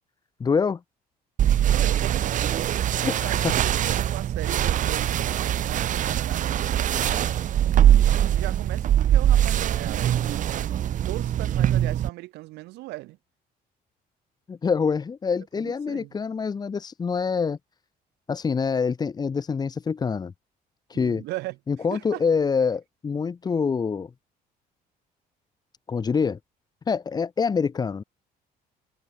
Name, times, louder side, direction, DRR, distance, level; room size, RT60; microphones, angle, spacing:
voice 1, 0.4-0.8 2.9-3.5 14.5-17.6 18.3-20.3 20.9-21.2 21.7-24.1 25.9-26.4 26.9-28.0, left 5 dB, 25° left, 0.6 m, -25 dB
sound 1, 1.4-12.1, right 11 dB, 50° right, 0.7 m, -22 dB
voice 2, 1.6-2.5 3.0-6.8 8.2-10.7 11.1-13.2 15.5-16.1 20.9-21.6 21.9-22.2, right 20 dB, 85° right, 1.0 m, -37 dB
cardioid pair, 110°, 17 cm